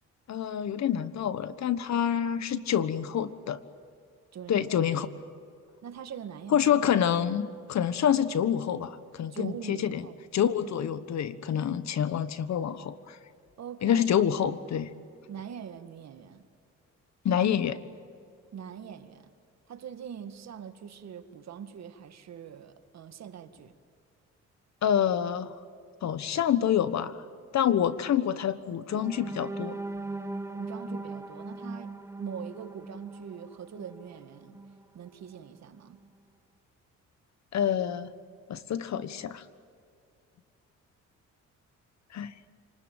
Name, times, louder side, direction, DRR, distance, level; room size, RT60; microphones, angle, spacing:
voice 1, 0.3-3.6 4.5-5.1 6.5-10.1 10.3-13.2 13.8-14.9 17.2-17.8 24.8-25.5 26.0-27.2 27.5-29.8 37.5-38.1 38.5-39.4 42.1-42.3, left 9 dB, 65° left, 14 dB, 1.3 m, -27 dB
voice 2, 4.3-4.9 5.8-6.7 7.5-7.6 9.3-10.2 13.6-14.1 15.3-16.5 18.5-19.3 19.7-23.7 30.5-31.9 32.2-34.6 34.9-36.0, right 8 dB, 60° right, 9 dB, 1.9 m, -43 dB
sound 1, 28.9-34.8 35.3-35.5 35.8-36.1, right 2 dB, 10° right, 1.4 m, -39 dB
28.0 x 20.0 x 9.1 m, 2.4 s
cardioid pair, 90°, 30 cm